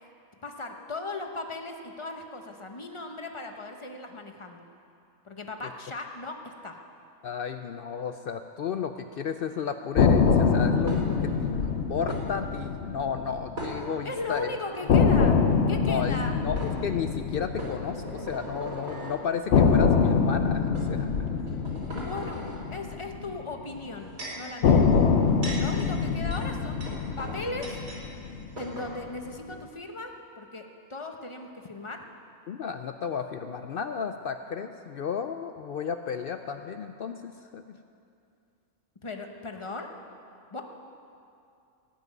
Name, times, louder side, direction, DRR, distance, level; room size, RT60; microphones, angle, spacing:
voice 1, 0.4-4.7 5.2-6.8 14.0-15.4 15.7-16.4 21.9-22.4 22.7-24.9 25.6-26.8 27.2-27.8 28.6-32.0 39.0-40.0 40.5-40.6, left 2 dB, 25° left, 4 dB, 0.9 m, -37 dB
voice 2, 7.2-14.5 15.8-21.1 32.5-37.8, left 7 dB, 75° left, 8 dB, 0.5 m, -33 dB
sound 1, 10.0-14.1 14.3-14.4 14.9-19.0 19.5-23.9 24.6-29.0, left 5 dB, 55° left, 0.9 m, -25 dB
sound 2, 10.9-11.3 12.1-12.2 13.6-14.2 14.7-14.8 16.1-16.2 16.6-16.7 17.6-19.2 20.0-20.1 20.7-20.9 21.4-22.6 23.7-24.5 25.1-28.0 28.3-28.4 28.6-28.9, right 1 dB, 80° right, 3.8 m, -39 dB
18.0 x 6.1 x 9.2 m, 2.6 s
omnidirectional pair, 1.5 m